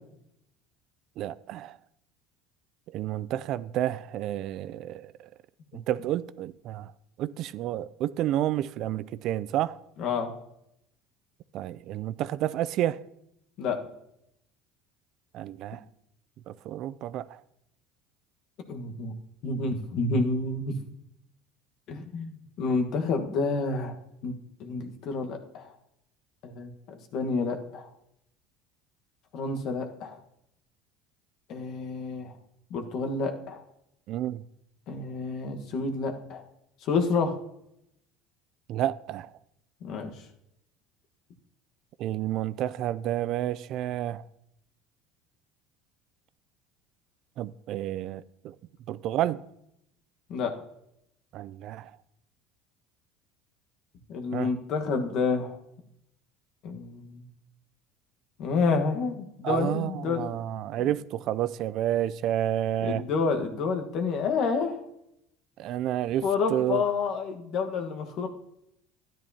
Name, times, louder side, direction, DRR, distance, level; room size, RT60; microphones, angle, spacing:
voice 1, 1.2-1.8 2.9-5.3 5.7-6.9 7.2-9.8 11.5-13.0 15.3-15.8 16.5-17.4 34.1-34.4 38.7-39.3 42.0-44.2 47.4-48.6 48.9-49.4 51.3-51.9 54.3-54.5 59.4-63.0 65.6-66.8, right 12 dB, 55° right, 0.3 m, -30 dB
voice 2, 10.0-10.3 13.6-13.8 18.7-19.1 19.4-20.8 21.9-23.9 24.2-24.3 24.6-25.7 26.4-27.9 29.3-30.2 31.5-32.3 32.7-33.6 34.9-36.4 36.8-37.4 39.8-40.1 50.3-50.5 54.1-55.6 56.6-57.2 58.4-60.2 60.8-60.9 62.8-64.8 66.2-68.3, left 4 dB, 55° left, 1.3 m, -29 dB
12.5 x 10.5 x 2.8 m
supercardioid pair, 125°, 0 cm